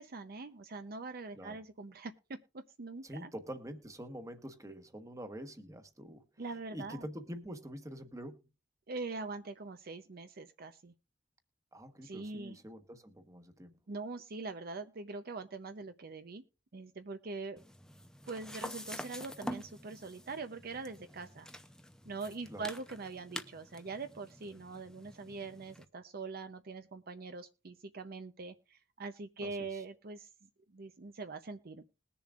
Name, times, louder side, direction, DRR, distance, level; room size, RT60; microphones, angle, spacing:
voice 1, 0.0-3.3 6.4-7.1 8.9-10.9 12.0-12.6 13.9-16.4 16.7-17.6 18.3-21.5 22.1-30.3 30.7-31.8, right 3 dB, 55° right, 0.7 m, -43 dB
voice 2, 3.0-6.2 6.7-8.4 11.7-13.8 22.5-22.7 29.4-29.8, equal, 20° right, 1.2 m, -46 dB
sound 1, 17.6-25.8, equal, 5° left, 0.6 m, -47 dB
20.5 x 7.0 x 2.4 m
head